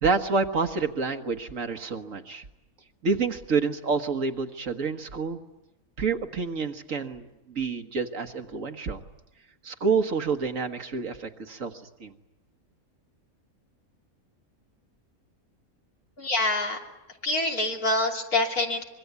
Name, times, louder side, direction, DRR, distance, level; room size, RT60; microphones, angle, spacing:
voice 1, 0.0-2.4 3.0-5.4 6.0-9.0 9.6-11.7 12.0-12.1, right 4 dB, 60° right, 6 dB, 1.8 m, -28 dB
voice 2, 16.2-16.8 17.2-18.8, left 2 dB, 75° left, 1 dB, 3.6 m, -26 dB
25.5 x 23.0 x 9.6 m, 0.97 s
omnidirectional pair, 1.6 m